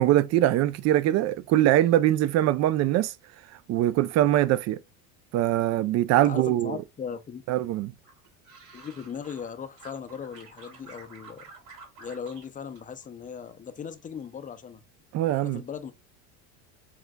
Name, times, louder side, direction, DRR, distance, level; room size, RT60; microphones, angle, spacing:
voice 1, 0.0-3.1 3.7-4.8 5.3-6.8 7.5-7.9 15.1-15.6, right 13 dB, 45° right, 0.5 m, -22 dB
voice 2, 6.3-7.4 8.7-11.5 12.0-14.8 15.3-15.9, left 7 dB, 20° left, 0.5 m, -38 dB
sound 1, 8.0-9.5 9.8-12.5 12.8-13.5 13.8-14.3, right 4 dB, 70° right, 2.4 m, -50 dB
4.8 x 3.4 x 2.2 m
supercardioid pair, 110°, 37 cm